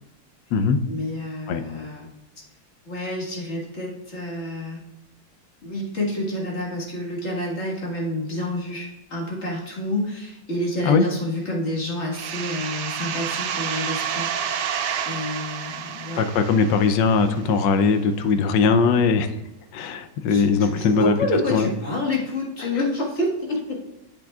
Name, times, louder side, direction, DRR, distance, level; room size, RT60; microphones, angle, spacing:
voice 1, 0.9-2.1 2.9-4.8 5.6-14.7 15.1-16.2 20.3-23.7, left 1 dB, 40° left, -3 dB, 1.9 m, -28 dB
sound 1, 12.1-17.6, right 8 dB, 70° right, 1.2 m, -30 dB
voice 2, 16.2-19.3 19.7-21.1 21.5-21.7 22.6-22.7, left 5 dB, 80° left, 9 dB, 1.3 m, -20 dB
8.8 x 7.8 x 2.4 m, 1.0 s
omnidirectional pair, 2.0 m